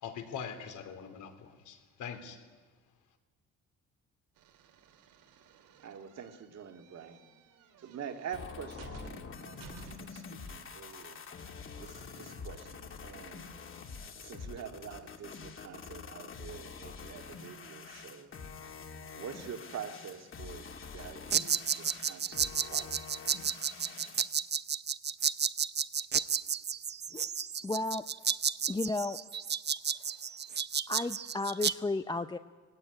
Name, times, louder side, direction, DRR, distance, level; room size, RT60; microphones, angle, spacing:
voice 1, 0.0-2.4, left 7 dB, 70° left, 6 dB, 3.5 m, -42 dB
sound 1, 4.4-10.3, right 6 dB, 85° right, 2.5 m, -55 dB
voice 2, 5.8-7.2 7.8-11.2 11.8-13.5 14.2-18.4 19.1-23.0, right 7 dB, 55° right, 5 dB, 2.1 m, -46 dB
sound 2, 8.3-24.3, left 5 dB, 40° left, 2.6 m, -46 dB
sound 3, 21.3-31.7, right 8 dB, 35° right, 0.7 m, -32 dB
voice 3, 27.6-28.0 28.7-29.2 29.9-30.4 30.9-32.4, left 2 dB, 15° left, 9 dB, 0.6 m, -34 dB
20.5 x 17.0 x 9.9 m, 1.4 s
cardioid pair, 100°, 31 cm